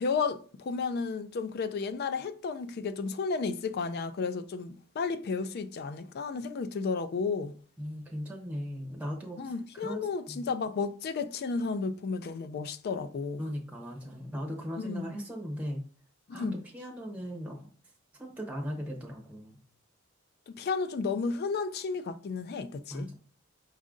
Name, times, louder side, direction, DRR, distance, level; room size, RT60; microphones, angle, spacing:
voice 1, 0.0-7.5 9.4-13.4 14.8-15.1 16.3-16.6 20.5-23.1, left 4 dB, 50° left, 0.4 m, -33 dB
voice 2, 7.8-10.4 13.4-15.8 16.3-16.5 16.7-17.6 18.1-19.6 22.9-23.1, equal, 5° right, 0.7 m, -38 dB
5.2 x 2.4 x 3.7 m
head